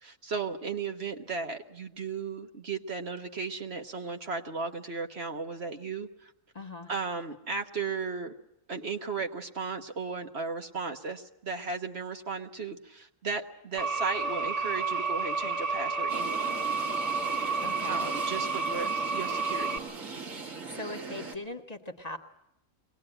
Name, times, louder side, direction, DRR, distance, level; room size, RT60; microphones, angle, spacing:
voice 1, 0.0-6.3 6.9-8.3 8.7-16.5 17.3-17.6 17.9-19.8, right 4 dB, 55° right, 5 dB, 1.4 m, -35 dB
voice 2, 6.5-6.9 17.6-18.1 20.4-22.2, left 2 dB, 30° left, 5 dB, 1.5 m, -40 dB
sound 1, 13.8-19.8, right 4 dB, 30° right, 1.6 m, -30 dB
sound 2, 16.1-21.4, right 4 dB, 75° right, 2.3 m, -40 dB
23.0 x 19.5 x 8.9 m, 0.82 s
omnidirectional pair, 1.4 m